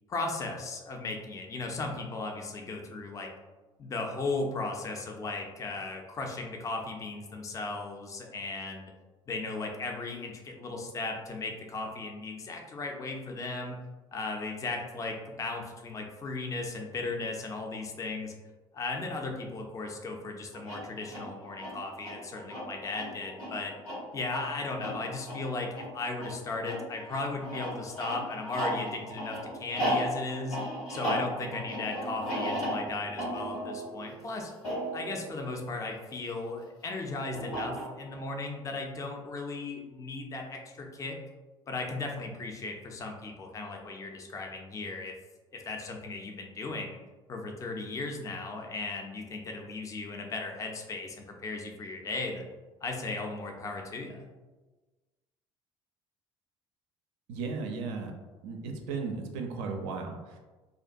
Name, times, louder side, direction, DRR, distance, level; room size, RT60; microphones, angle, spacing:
voice 1, 0.1-3.3 3.8-8.9 9.3-13.8 14.1-18.3 18.7-23.7 24.1-30.6 30.9-34.5 34.9-41.2 41.7-45.1 45.5-47.0 47.3-52.5 52.8-54.3, left 3 dB, 20° left, 2 dB, 0.4 m, -36 dB
sound 1, 20.5-36.3 37.3-38.2, equal, 90° left, 1.4 m, -36 dB
voice 2, 57.3-58.1 58.4-60.4, right 4 dB, 60° right, 3 dB, 0.4 m, -35 dB
2.5 x 2.1 x 2.5 m, 1.2 s
figure-of-eight pair, 55°, 15 cm